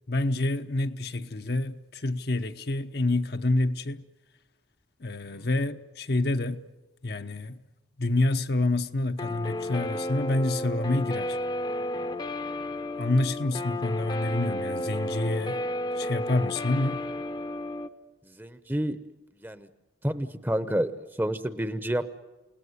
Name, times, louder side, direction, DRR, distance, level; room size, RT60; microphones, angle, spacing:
voice 1, 0.1-4.0 5.0-6.6 7.0-7.6 8.0-11.4 13.0-15.6 16.0-17.0, left 2 dB, 55° left, 0.9 m, -27 dB
Guitar, 9.2-17.9, left 1 dB, 25° left, 0.8 m, -32 dB
voice 2, 18.3-19.0 19.4-19.7 20.0-22.1, right 1 dB, 10° right, 0.9 m, -29 dB
28.5 x 19.0 x 9.6 m
head